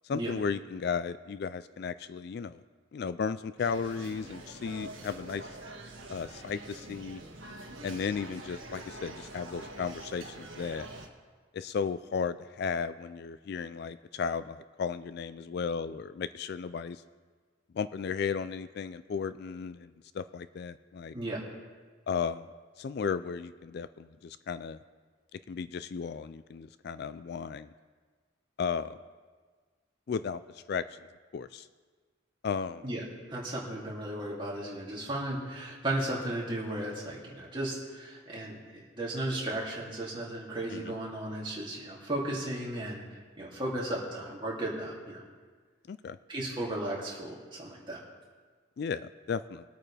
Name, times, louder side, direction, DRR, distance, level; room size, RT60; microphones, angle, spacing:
voice 1, 0.0-2.6 2.9-5.5 6.1-7.2 7.8-10.9 11.5-17.0 17.7-21.1 22.1-22.5 22.8-24.8 25.3-27.7 28.6-29.0 30.1-31.0 31.3-31.7 32.4-32.8 40.7-40.9 45.9-46.2 48.8-49.6, left 6 dB, 55° left, 14 dB, 0.3 m, -35 dB
sound 1, 3.6-11.1, right 2 dB, 80° right, 1.5 m, -45 dB
voice 2, 33.3-45.2 46.3-48.0, right 1 dB, 25° right, -4 dB, 2.6 m, -35 dB
22.0 x 8.7 x 3.3 m, 1.5 s
head